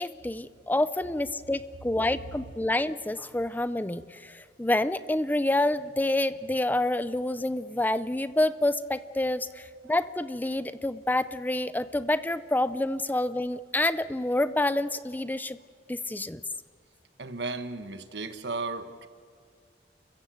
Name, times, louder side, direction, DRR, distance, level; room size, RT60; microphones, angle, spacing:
voice 1, 0.0-15.6 15.9-16.4, left 1 dB, 10° left, 13 dB, 0.5 m, -28 dB
voice 2, 17.2-19.1, right 3 dB, 75° right, 9 dB, 1.4 m, -35 dB
30.0 x 15.0 x 7.7 m, 2.1 s
head